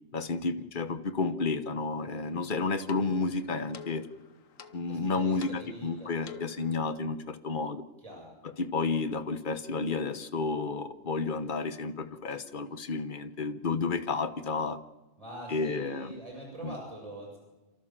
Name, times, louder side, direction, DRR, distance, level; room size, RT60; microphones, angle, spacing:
voice 1, 0.1-4.1 4.7-7.8 8.4-14.8 15.5-16.1 16.6-16.8, left 4 dB, 40° left, 10 dB, 1.2 m, -31 dB
sound 1, 2.2-6.8, left 5 dB, 90° left, 1.5 m, -49 dB
voice 2, 4.9-6.3 8.0-8.3 15.2-17.4, right 1 dB, 25° right, -2 dB, 7.1 m, -44 dB
28.5 x 13.0 x 7.4 m, 1.1 s
omnidirectional pair, 1.3 m